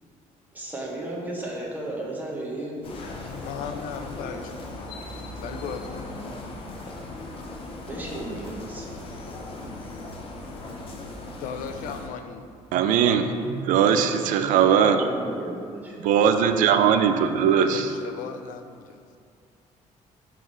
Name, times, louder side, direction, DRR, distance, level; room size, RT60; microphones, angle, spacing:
voice 1, 0.5-2.8 7.8-8.9 14.2-14.6 14.9-16.0, right 1 dB, 15° right, -3 dB, 0.9 m, -34 dB
sound 1, 2.8-12.1, left 2 dB, 45° left, 0.7 m, -38 dB
voice 2, 3.1-4.9 5.4-6.2 11.4-12.5 17.7-19.0, left 7 dB, 85° left, 8 dB, 0.4 m, -37 dB
voice 3, 12.7-15.0 16.0-17.9, right 7 dB, 80° right, 8 dB, 0.4 m, -20 dB
5.7 x 3.2 x 5.2 m, 2.2 s
cardioid pair, 160°, 13 cm